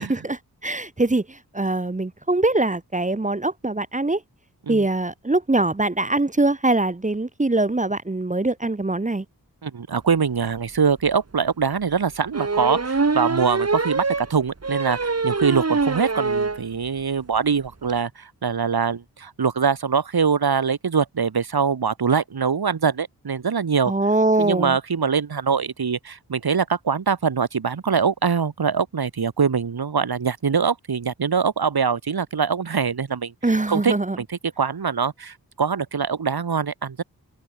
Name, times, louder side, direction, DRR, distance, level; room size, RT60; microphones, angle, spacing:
voice 1, 0.0-4.2 4.7-9.2 23.8-24.8 33.4-34.2, right 2 dB, 20° right, 0.9 m, -23 dB
voice 2, 9.6-23.9 24.4-33.3 33.7-37.0, right 6 dB, 75° right, 2.2 m, -23 dB
sound 1, 10.6-10.7 11.0-11.1 12.3-16.6 17.0-17.1 17.4-17.5 17.6-17.9, right 4 dB, 40° right, 2.1 m, -24 dB
open air
wide cardioid pair, 75°, 37 cm